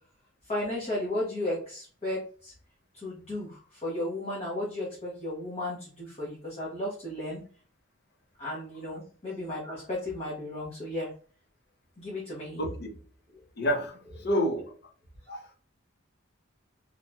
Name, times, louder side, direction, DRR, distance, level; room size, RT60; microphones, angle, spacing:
voice 1, 0.5-2.5 2.9-7.4 8.4-11.1 12.0-12.6 15.3-15.4, left 1 dB, 30° left, -7 dB, 0.9 m, -34 dB
voice 2, 12.6-13.0 13.6-14.7, equal, 50° left, 4 dB, 0.5 m, -29 dB
3.0 x 2.7 x 2.2 m, 0.41 s
head